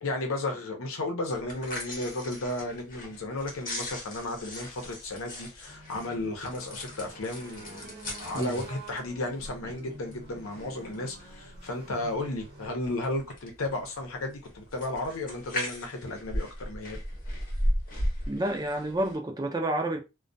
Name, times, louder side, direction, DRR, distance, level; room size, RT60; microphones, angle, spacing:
voice 1, 0.0-7.9 8.2-17.0, left 2 dB, 85° left, 0.7 m, -34 dB
sound 1, 1.3-19.2, equal, 40° left, 0.9 m, -37 dB
sound 2, 5.7-12.7, right 1 dB, 50° right, 0.8 m, -48 dB
voice 2, 18.3-20.0, right 1 dB, 20° right, 0.4 m, -29 dB
2.2 x 2.2 x 2.6 m
head